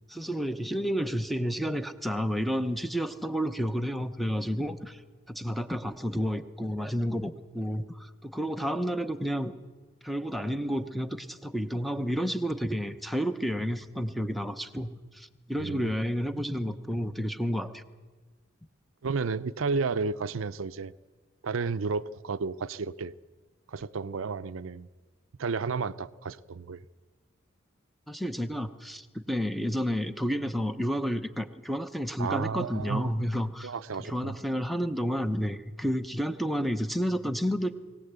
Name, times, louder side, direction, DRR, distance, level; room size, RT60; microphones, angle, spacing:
voice 1, 0.1-5.0 5.3-9.5 10.0-17.8 28.1-33.7 34.0-37.7, equal, ahead, 0.8 m, -30 dB
voice 2, 15.6-15.9 19.0-20.9 21.4-23.1 23.7-24.9 25.4-26.8 32.2-33.1 33.6-34.3, right 4 dB, 80° right, 0.6 m, -32 dB
20.5 x 18.0 x 8.2 m
head